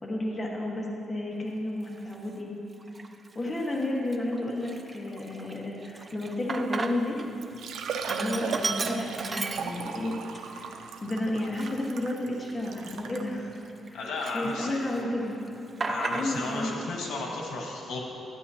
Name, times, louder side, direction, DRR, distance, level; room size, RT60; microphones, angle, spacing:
voice 1, 0.0-2.5 3.3-7.2 8.1-10.1 10.5-13.5 13.9-15.4 16.1-16.7, left 1 dB, 20° left, -3 dB, 1.3 m, -32 dB
Sink (filling or washing), 2.0-2.1 2.8-3.3 3.7-3.8 4.1-7.3 7.6-10.1 10.6-10.7 11.3-13.9 14.2-15.0 15.2-16.6, right 3 dB, 30° right, 0.4 m, -35 dB
Liquid, 7.0-7.1 7.4-13.3 14.0-14.1 14.5-14.6 16.3-16.4 16.5-16.6, right 6 dB, 85° right, 0.5 m, -37 dB
voice 2, 13.9-14.8 15.9-18.0, left 3 dB, 90° left, -1 dB, 1.3 m, -33 dB
13.0 x 9.2 x 2.8 m, 2.8 s
cardioid pair, 135°, 0 cm